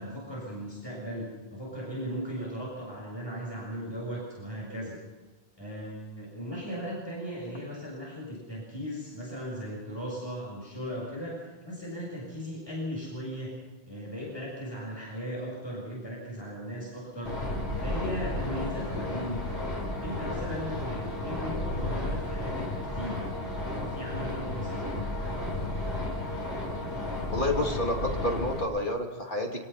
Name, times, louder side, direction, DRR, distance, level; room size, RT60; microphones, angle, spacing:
voice 1, 0.0-5.0 5.6-13.6 13.9-17.4 17.8-19.5 20.0-23.3 23.7-25.8, equal, 25° left, -4 dB, 7.0 m, -37 dB
sound 1, 17.2-28.6, left 1 dB, 80° left, 5.9 m, -33 dB
voice 2, 27.3-29.7, left 1 dB, 50° left, 0 dB, 2.9 m, -29 dB
27.5 x 19.0 x 5.7 m, 1.2 s
omnidirectional pair, 1.1 m